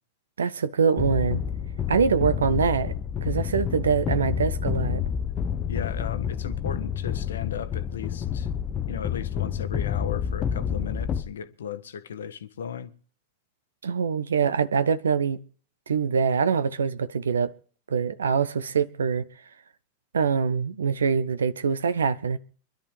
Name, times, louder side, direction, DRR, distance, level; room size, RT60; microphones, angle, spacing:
voice 1, 0.4-1.4 1.9-2.9 3.2-5.0 13.8-15.4 15.9-17.5 17.9-19.3 20.1-22.4, right 6 dB, 70° right, 0.7 m, -24 dB
sound 1, 1.0-11.2, left 8 dB, 30° left, 0.8 m, -29 dB
voice 2, 5.7-8.5 8.9-12.9, left 8 dB, 65° left, 1.0 m, -36 dB
25.5 x 11.5 x 3.3 m
figure-of-eight pair, 90°, 0 cm